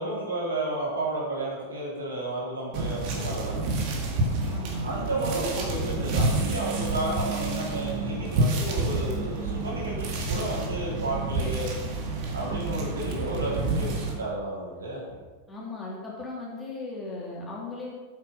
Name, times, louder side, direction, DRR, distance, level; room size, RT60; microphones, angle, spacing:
voice 1, 0.0-3.6 4.8-11.7 12.3-15.0, right 2 dB, 70° right, -5 dB, 3.5 m, -32 dB
sound 1, 2.7-14.1, right 2 dB, 45° right, 1.9 m, -29 dB
voice 2, 4.5-4.8 15.5-17.9, left 2 dB, 15° left, -4 dB, 2.9 m, -37 dB
sound 2, 6.4-8.4 9.0-11.7 12.3-14.6, right 8 dB, 20° right, 1.0 m, -39 dB
8.7 x 7.3 x 5.4 m, 1.4 s
figure-of-eight pair, 90°, 0 cm